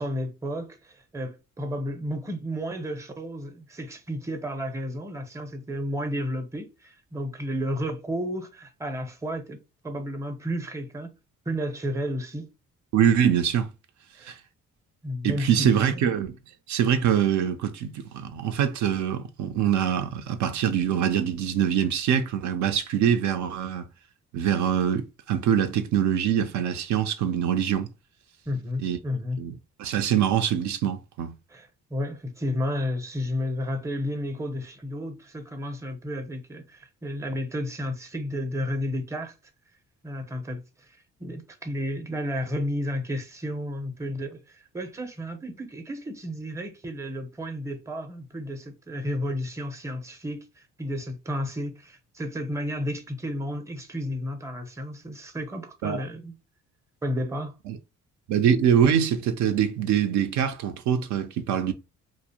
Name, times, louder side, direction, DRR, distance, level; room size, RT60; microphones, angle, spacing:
voice 1, 0.0-9.6 9.8-11.1 11.5-12.5 14.2-14.3 15.0-16.1 28.5-29.4 31.5-39.3 40.0-40.6 40.9-56.3 57.0-57.6, equal, 10° right, 0.6 m, -32 dB
voice 2, 12.9-13.7 14.2-14.4 15.2-16.4 16.7-23.9 24.3-27.9 28.8-29.0 29.4-29.5 29.8-31.4 55.8-56.0 57.7-57.8 58.3-61.7, right 9 dB, 70° right, 0.5 m, -24 dB
2.5 x 2.0 x 2.8 m
cardioid pair, 90°, 30 cm